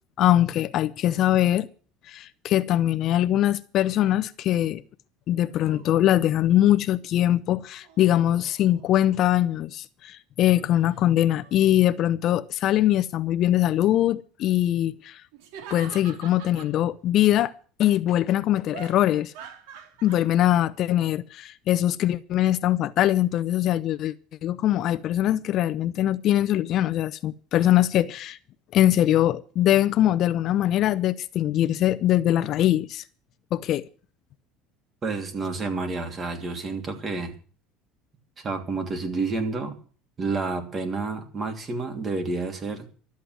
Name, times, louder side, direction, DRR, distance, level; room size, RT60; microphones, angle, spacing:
voice 1, 0.2-1.7 2.1-4.8 5.3-15.2 15.7-17.5 17.8-19.3 20.0-24.1 24.4-28.4 28.7-33.0 33.5-33.8, left 12 dB, 45° left, 0.6 m, -22 dB
sound 1, 5.5-6.3 7.5-9.2 10.6-11.0 11.3-12.0 15.3-16.8 18.7-20.3, right 6 dB, 80° right, 2.9 m, -46 dB
voice 2, 35.0-37.3 38.4-39.7 40.2-42.9, right 3 dB, 25° right, 2.8 m, -29 dB
12.5 x 8.4 x 9.2 m
cardioid pair, 135°, 0 cm